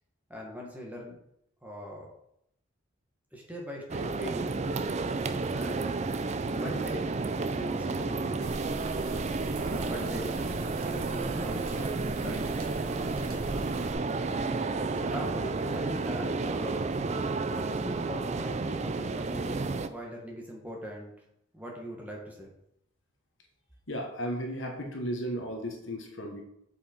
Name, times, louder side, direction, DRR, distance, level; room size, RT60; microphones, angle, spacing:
voice 1, 0.3-1.2 1.6-2.1 3.3-4.6 5.5-5.8 6.4-7.1 7.5-8.7 9.8-10.4 10.8-12.8 14.9-17.0 17.5-21.1 21.5-22.5, equal, 5° right, -2 dB, 1.5 m, -41 dB
sound 1, 3.9-19.9, right 3 dB, 30° right, 0.4 m, -31 dB
sound 2, 8.4-13.9, right 1 dB, 85° right, 1.4 m, -41 dB
voice 2, 23.9-26.4, equal, 60° left, 2 dB, 1.4 m, -34 dB
7.3 x 5.6 x 4.5 m, 0.76 s
head